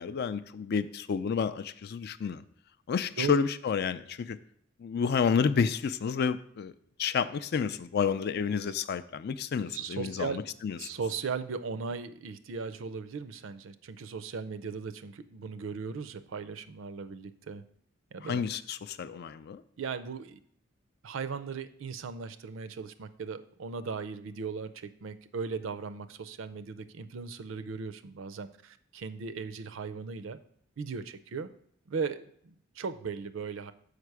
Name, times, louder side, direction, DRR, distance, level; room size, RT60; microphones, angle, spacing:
voice 1, 0.0-2.4 2.9-4.4 4.8-6.7 7.0-10.8 18.2-19.6, left 6 dB, 55° left, 13 dB, 0.4 m, -30 dB
voice 2, 9.7-10.4 10.8-17.6 18.1-18.4 19.8-20.4 21.0-30.4 30.8-31.5 31.9-33.7, right 5 dB, 70° right, 12 dB, 0.5 m, -37 dB
6.6 x 5.1 x 4.7 m, 0.65 s
head